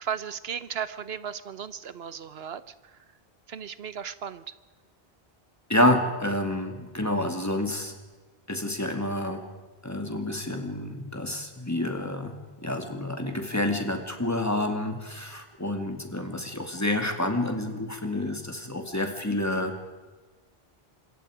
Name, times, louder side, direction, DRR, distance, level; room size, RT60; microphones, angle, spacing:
voice 1, 0.0-3.0 3.5-4.5, right 8 dB, 80° right, 14 dB, 1.1 m, -36 dB
voice 2, 5.7-7.9 8.5-9.4 9.8-19.8, left 1 dB, 15° left, 4 dB, 2.3 m, -28 dB
26.5 x 22.0 x 5.0 m, 1.3 s
omnidirectional pair, 1.0 m